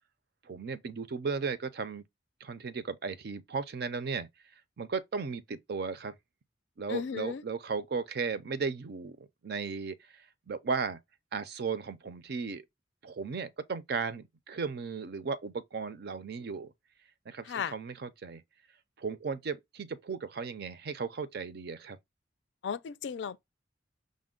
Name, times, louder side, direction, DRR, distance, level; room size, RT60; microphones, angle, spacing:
voice 1, 0.4-2.0 2.4-4.3 4.8-6.1 6.8-11.0 11.3-12.6 13.0-16.7 17.3-18.4 19.0-22.0, right 5 dB, 60° right, 0.5 m, -36 dB
voice 2, 6.9-7.4 17.5-17.7 22.6-23.4, left 6 dB, 75° left, 0.4 m, -35 dB
5.1 x 2.1 x 3.6 m
head